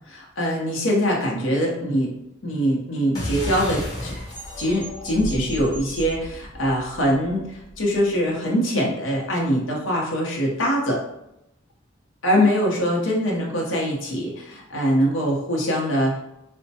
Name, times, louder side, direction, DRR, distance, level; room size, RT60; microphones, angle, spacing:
voice 1, 0.1-2.1 2.4-4.2 4.6-11.0 12.2-16.2, equal, 90° left, -2 dB, 0.8 m, -23 dB
sound 1, 3.1-8.1, equal, 20° left, 1.0 m, -33 dB
4.2 x 2.1 x 2.7 m, 0.84 s
head